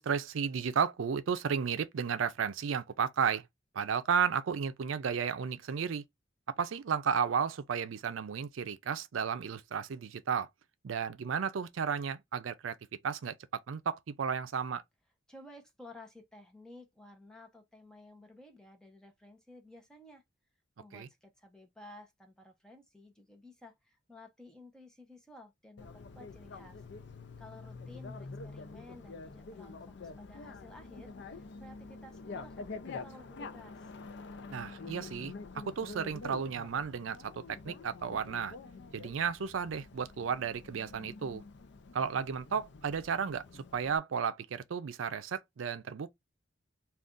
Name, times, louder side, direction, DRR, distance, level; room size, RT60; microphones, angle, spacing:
voice 1, 0.0-3.5 3.7-6.0 6.6-10.5 10.8-12.8 13.0-14.8 20.9-21.1 34.5-35.3 35.6-38.5 38.9-41.4 41.9-46.1, right 6 dB, 85° right, 0.4 m, -33 dB
voice 2, 15.3-20.2 20.8-26.8 27.4-33.8, left 1 dB, 5° left, 0.7 m, -54 dB
Bicycle, 25.8-44.0, left 4 dB, 60° left, 0.5 m, -47 dB
2.5 x 2.3 x 3.6 m
head